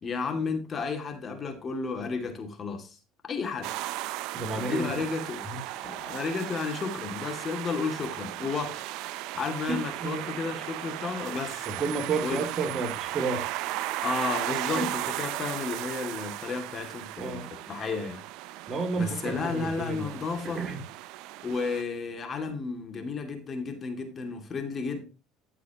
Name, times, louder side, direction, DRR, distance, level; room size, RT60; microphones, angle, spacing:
voice 1, 0.0-3.0 3.2-3.7 4.5-5.5 5.8-8.8 9.3-11.7 12.2-12.4 14.0-18.2 18.9-20.6 21.4-25.1, left 4 dB, 35° left, 2.4 m, -32 dB
sound 1, 3.6-21.8, right 15 dB, 70° right, 0.6 m, -36 dB
voice 2, 4.3-4.9 5.5-5.6 9.7-10.3 11.7-13.5 14.7-14.9 17.2-17.5 18.7-20.8, right 3 dB, 35° right, 2.5 m, -31 dB
12.5 x 7.6 x 3.0 m
supercardioid pair, 90°, 0 cm